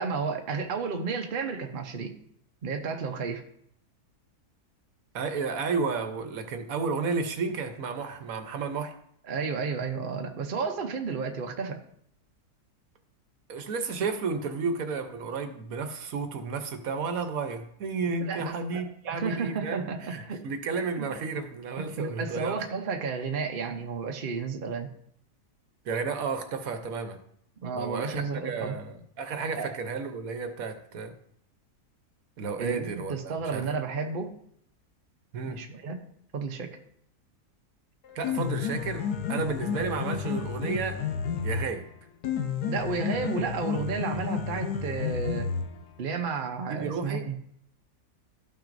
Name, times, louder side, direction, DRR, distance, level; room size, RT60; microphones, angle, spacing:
voice 1, 0.0-2.1 2.6-3.4 9.2-11.8 18.2-18.8 19.1-20.4 21.0-21.1 21.8-24.9 27.6-28.8 29.6-29.7 32.6-34.3 35.4-36.0 36.3-36.8 42.7-45.5 46.0-47.4, right 5 dB, 45° right, 5 dB, 0.7 m, -32 dB
voice 2, 5.1-8.9 13.5-22.6 25.8-27.2 27.7-31.1 32.4-33.7 35.3-35.6 38.1-39.0 39.3-41.0 41.4-41.8 46.7-47.3, right 4 dB, 65° right, 7 dB, 1.2 m, -32 dB
Piano, 38.0-46.0, left 6 dB, 80° left, 1.4 m, -31 dB
13.0 x 6.0 x 2.6 m, 0.69 s
omnidirectional pair, 1.7 m